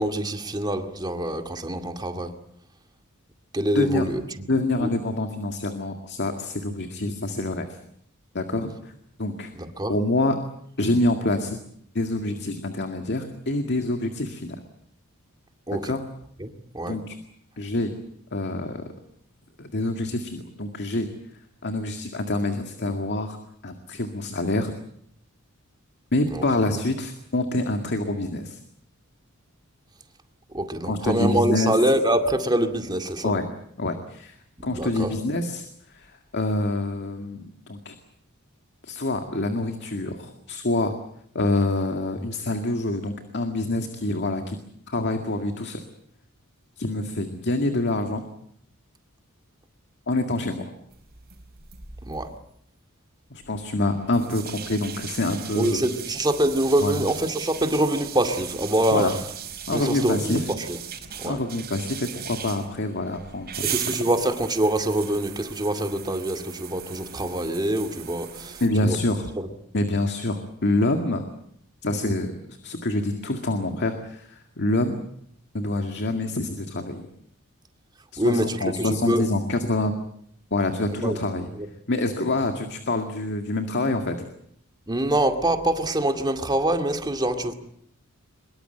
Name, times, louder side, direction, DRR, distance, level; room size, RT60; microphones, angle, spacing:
voice 1, 0.0-2.3 3.5-4.5 4.8-4.9 9.5-9.9 15.7-15.9 16.4-17.0 26.3-26.4 30.5-33.3 34.7-35.2 52.1-52.3 55.5-59.2 59.7-60.4 60.7-60.8 61.2-61.4 63.6-69.0 69.4-69.5 78.2-79.3 81.0-81.2 81.5-81.7 84.9-87.5, right 1 dB, 20° right, 6 dB, 2.2 m, -25 dB
voice 2, 3.7-4.1 4.5-7.8 8.3-8.9 9.2-9.5 9.9-10.4 10.8-11.6 11.9-14.6 15.8-16.0 16.9-17.2 17.6-17.9 18.3-18.8 19.6-21.1 21.6-23.4 23.6-24.7 26.1-28.6 30.8-31.8 33.2-33.5 33.8-34.3 34.6-35.7 35.9-38.0 38.8-40.9 41.3-44.6 44.9-45.8 46.8-48.2 50.1-50.7 53.3-55.8 56.8-57.0 58.9-59.1 59.7-60.5 61.2-63.7 68.6-69.3 69.7-71.3 71.8-75.0 75.5-77.1 78.1-79.9 80.5-81.5 81.9-84.3, left 2 dB, 55° left, 6 dB, 2.0 m, -26 dB
sound 1, 50.9-52.4 53.4-68.7, right 9 dB, 45° right, 4.6 m, -38 dB
24.0 x 22.5 x 8.0 m, 0.69 s
head